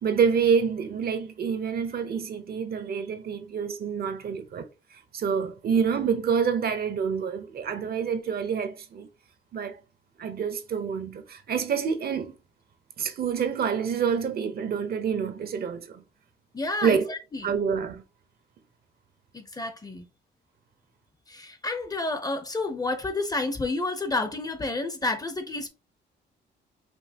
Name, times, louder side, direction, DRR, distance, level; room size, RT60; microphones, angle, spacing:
voice 1, 0.0-9.1 9.5-9.8 10.2-12.3 13.0-16.0 16.8-17.1 17.4-18.0, right 6 dB, 50° right, 0.8 m, -27 dB
voice 2, 16.5-17.5 19.3-20.0 21.3-25.7, left 2 dB, 20° left, 0.7 m, -30 dB
5.3 x 2.8 x 2.8 m
cardioid pair, 110°, 20 cm